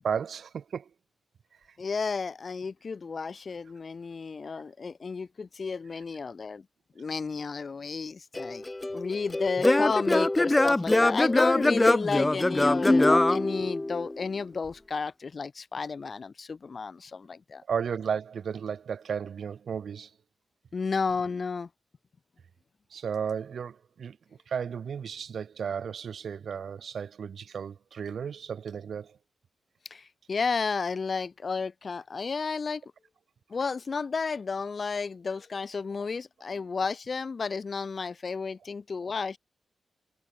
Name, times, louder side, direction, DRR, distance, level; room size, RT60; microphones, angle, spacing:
voice 1, 0.0-0.9 17.7-20.1 22.9-24.2 24.5-29.2, right 7 dB, 60° right, 1.8 m, -34 dB
voice 2, 1.8-6.6 7.0-8.6 8.9-17.6 20.7-21.7 29.9-32.8 33.5-39.4, left 5 dB, 40° left, 2.1 m, -32 dB
Singing / Plucked string instrument, 8.4-14.2, left 2 dB, 15° left, 0.8 m, -23 dB
wide cardioid pair, 155°, 0 cm